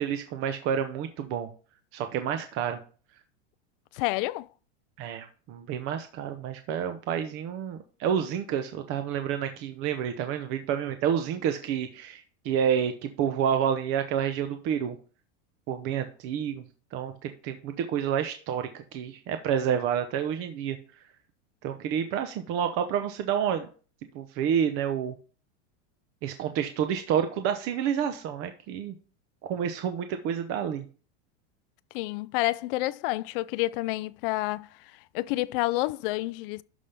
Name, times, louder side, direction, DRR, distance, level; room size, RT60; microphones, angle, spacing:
voice 1, 0.0-1.5 1.9-2.8 5.0-15.0 15.7-16.6 16.9-20.8 21.6-23.7 24.1-25.1 26.2-28.9 29.5-30.8, right 8 dB, 40° right, 0.9 m, -29 dB
voice 2, 3.9-4.5 31.9-34.7 35.1-36.6, left 19 dB, 55° left, 0.4 m, -29 dB
12.5 x 5.7 x 3.4 m
supercardioid pair, 150°, 34 cm